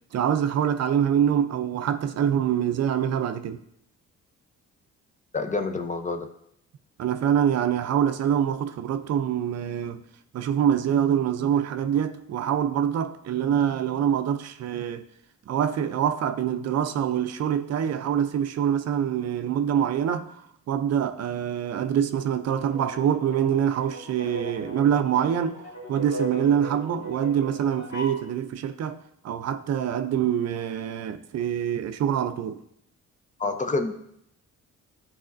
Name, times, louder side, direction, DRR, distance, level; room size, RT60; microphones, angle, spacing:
voice 1, 0.1-3.6 7.0-10.0 10.3-15.0 15.5-20.3 20.7-25.6 25.9-29.0 29.2-32.6, right 9 dB, 55° right, 0.5 m, -25 dB
voice 2, 5.3-6.3 33.4-33.9, left 3 dB, 25° left, 0.5 m, -27 dB
sound 1, 22.6-28.2, equal, 70° left, 1.9 m, -38 dB
9.7 x 4.1 x 2.5 m
cardioid pair, 90°, 30 cm